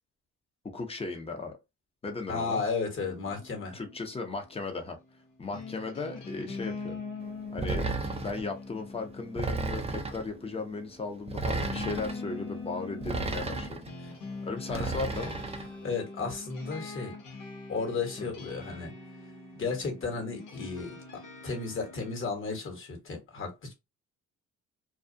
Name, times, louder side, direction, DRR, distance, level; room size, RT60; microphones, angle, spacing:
voice 1, 0.7-1.6 2.0-2.6 3.7-5.0 5.4-7.0 7.5-7.9 8.2-13.9 14.4-15.4 18.2-18.3, left 3 dB, 20° left, 0.7 m, -36 dB
voice 2, 2.3-3.8 14.0-14.1 14.7-15.0 15.8-17.1 17.7-18.9 19.5-23.7, left 4 dB, 45° left, 1.2 m, -34 dB
sound 1, 3.0-22.2, left 3 dB, 80° left, 0.9 m, -43 dB
sound 2, 7.6-8.5 9.4-10.3 11.3-12.2 13.0-13.9 14.7-15.7, right 3 dB, 20° right, 0.5 m, -33 dB
2.4 x 2.3 x 2.5 m
cardioid pair, 90°, 30 cm